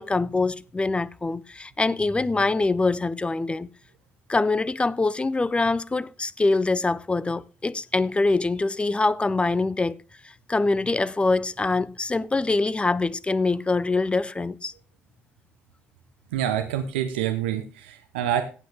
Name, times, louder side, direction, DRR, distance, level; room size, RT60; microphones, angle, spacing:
voice 1, 0.0-3.7 4.3-10.0 10.5-14.7, left 3 dB, 20° left, 0.7 m, -24 dB
voice 2, 16.3-18.4, right 10 dB, 75° right, 0.9 m, -27 dB
17.5 x 7.8 x 3.6 m
figure-of-eight pair, 45°, 6 cm